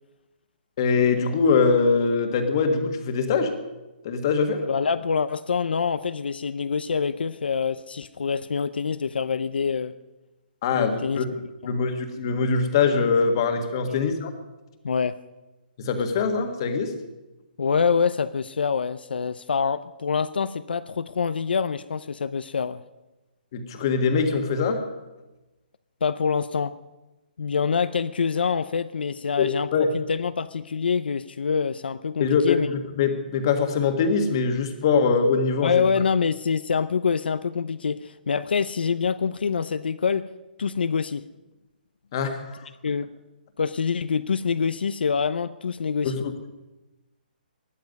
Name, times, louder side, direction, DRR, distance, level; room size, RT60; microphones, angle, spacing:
voice 1, 0.8-3.5 4.0-4.6 10.6-11.3 11.6-14.3 15.8-16.9 23.5-24.8 29.4-29.9 32.2-35.8 42.1-42.7 46.0-46.3, left 5 dB, 25° left, 6 dB, 1.6 m, -23 dB
voice 2, 4.7-9.9 10.7-11.2 11.6-11.8 13.9-14.1 14.8-15.2 17.6-22.8 26.0-26.8 27.4-32.7 35.6-40.3 40.6-41.2 42.8-43.1 43.6-46.2, left 6 dB, 75° left, 13 dB, 0.6 m, -25 dB
20.0 x 13.0 x 5.3 m, 1.1 s
hypercardioid pair, 175°, 5 cm